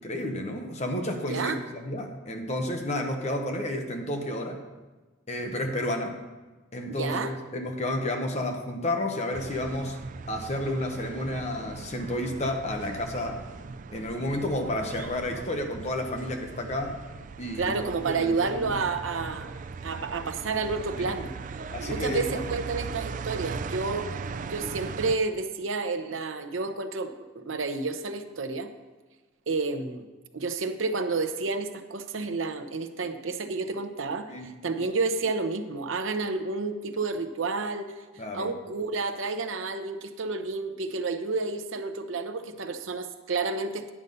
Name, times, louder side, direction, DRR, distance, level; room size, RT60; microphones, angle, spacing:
voice 1, 0.0-4.6 5.3-6.2 6.7-10.0 10.3-13.4 13.9-17.0 17.4-17.8 18.0-18.8 21.0-21.1 21.7-22.4 34.3-34.5 38.2-38.5, left 1 dB, 35° left, 4 dB, 1.0 m, -31 dB
voice 2, 6.9-7.3 17.6-19.5 19.8-21.3 21.9-24.1 24.5-28.7 29.5-30.1 30.3-37.9 38.3-43.9, right 4 dB, 85° right, 8 dB, 0.7 m, -30 dB
sound 1, 9.3-25.2, right 5 dB, 40° right, 0.3 m, -39 dB
9.8 x 6.7 x 5.4 m, 1.3 s
head